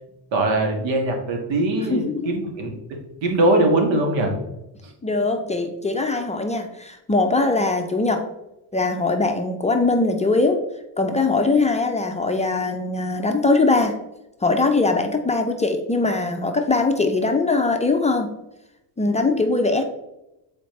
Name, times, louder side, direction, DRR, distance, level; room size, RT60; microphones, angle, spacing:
voice 1, 0.3-2.7 3.2-4.3, right 2 dB, 80° right, 2 dB, 1.7 m, -21 dB
voice 2, 1.9-2.4 5.0-8.2 8.7-10.6 11.0-14.0 14.4-18.3 19.0-19.8, left 3 dB, 15° left, 4 dB, 0.4 m, -21 dB
8.4 x 4.2 x 3.1 m, 0.92 s
cardioid pair, 120°, 45 cm